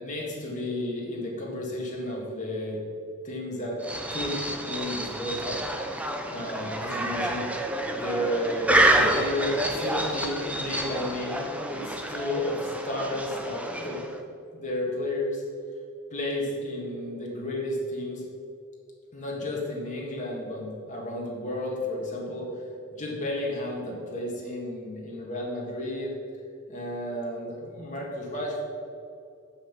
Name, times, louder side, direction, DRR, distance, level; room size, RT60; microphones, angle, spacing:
voice 1, 0.0-2.8 3.2-3.8 4.1-5.6 6.3-7.5 8.0-14.1 14.5-15.4 16.1-18.2 19.1-22.5 22.9-26.2 26.7-28.6, left 1 dB, 40° left, -2 dB, 1.7 m, -32 dB
sound 1, 3.8-14.2, right 1 dB, 5° right, 0.6 m, -28 dB
7.6 x 5.8 x 5.9 m, 2.5 s
head